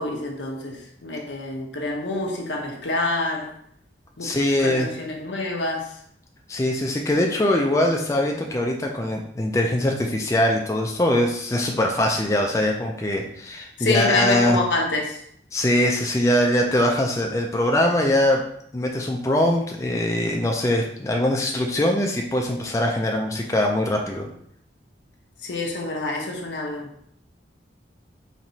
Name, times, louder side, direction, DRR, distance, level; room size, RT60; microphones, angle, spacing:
voice 1, 0.0-3.5 4.2-4.3 4.6-5.9 13.8-15.2 25.4-26.9, left 2 dB, 85° left, 1 dB, 0.8 m, -27 dB
voice 2, 4.2-4.9 6.5-14.6 15.5-18.4 18.7-24.3, left 1 dB, 15° left, 1 dB, 0.3 m, -22 dB
4.4 x 2.9 x 2.7 m, 0.68 s
head